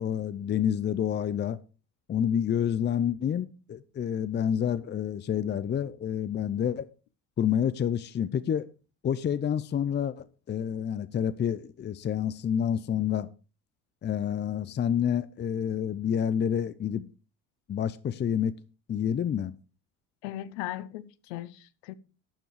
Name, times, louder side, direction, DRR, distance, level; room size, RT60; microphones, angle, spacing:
voice 1, 0.0-1.6 2.1-6.9 7.4-8.7 9.0-13.3 14.0-17.1 17.7-18.5 18.9-19.5, left 9 dB, 30° left, 0.6 m, -28 dB
voice 2, 20.2-21.9, left 14 dB, 80° left, 0.9 m, -38 dB
12.0 x 6.9 x 4.8 m
supercardioid pair, 75°, 34 cm